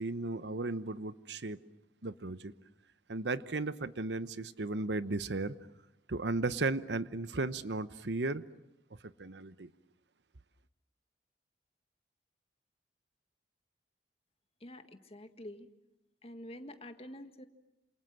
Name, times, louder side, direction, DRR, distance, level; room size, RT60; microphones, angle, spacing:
voice 1, 0.0-1.6 2.0-2.5 3.1-5.5 6.1-8.4 9.0-9.7, right 3 dB, 80° right, 1.0 m, -35 dB
voice 2, 14.6-15.7 16.2-17.5, left 1 dB, 35° left, 1.8 m, -47 dB
28.0 x 27.5 x 7.6 m
head